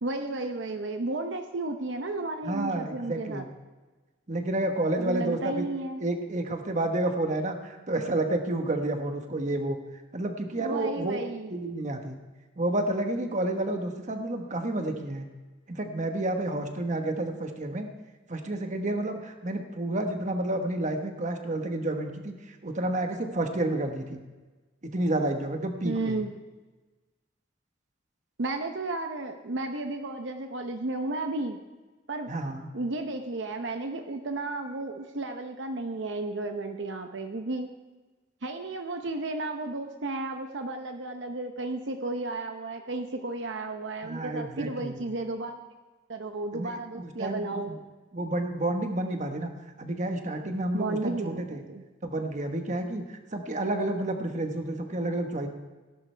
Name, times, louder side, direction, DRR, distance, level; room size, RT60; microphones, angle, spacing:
voice 1, 0.0-3.5 5.0-6.0 10.6-11.6 25.8-26.3 28.4-31.6 32.1-32.3 32.7-37.7 38.4-45.6 46.1-47.7 50.7-51.8, right 2 dB, 75° right, 5 dB, 0.8 m, -33 dB
voice 2, 2.4-3.5 4.3-5.6 6.0-9.8 10.1-11.2 11.5-12.2 12.6-15.3 15.7-17.9 18.3-22.3 22.6-24.2 24.8-26.2 32.3-32.7 44.0-45.0 46.5-47.8 48.1-49.5 49.8-51.6 52.0-55.5, right 1 dB, 40° right, 5 dB, 1.3 m, -30 dB
17.5 x 11.0 x 3.4 m, 1.3 s
head